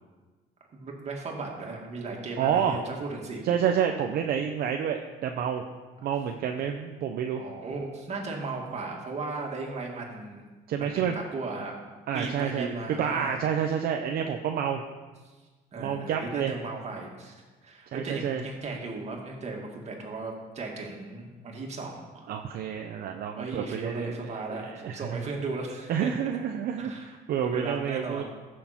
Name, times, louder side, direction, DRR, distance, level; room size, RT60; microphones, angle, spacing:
voice 1, 0.7-3.4 7.3-10.4 10.8-11.8 12.1-13.4 15.7-17.4 17.6-22.3 23.3-26.1 26.8-27.0 27.4-28.2, right 3 dB, 40° right, 0 dB, 2.3 m, -36 dB
voice 2, 2.4-2.8 3.4-5.6 6.0-7.4 10.7-11.1 12.1-14.8 15.8-16.6 17.9-18.4 22.3-25.2 25.9-28.2, right 8 dB, 65° right, 4 dB, 0.7 m, -29 dB
15.0 x 6.6 x 4.4 m, 1.3 s
cardioid pair, 110°, 17 cm